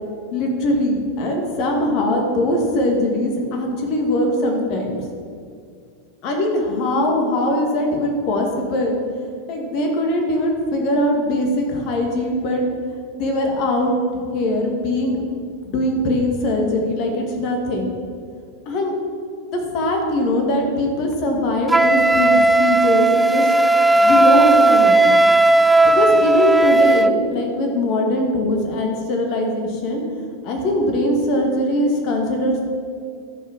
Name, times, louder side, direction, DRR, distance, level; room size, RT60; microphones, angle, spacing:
voice 1, 0.3-5.0 6.2-9.0 9.5-12.6 13.2-13.9 14.3-17.9 18.7-19.0 19.5-23.5 23.9-25.1 25.8-30.0 30.4-32.6, left 1 dB, 50° left, 2 dB, 2.1 m, -21 dB
Wind instrument woodwind instrument, 21.7-27.1, right 2 dB, 10° right, 0.3 m, -15 dB
13.5 x 5.3 x 6.0 m, 2.2 s
figure-of-eight pair, 90°, 0 cm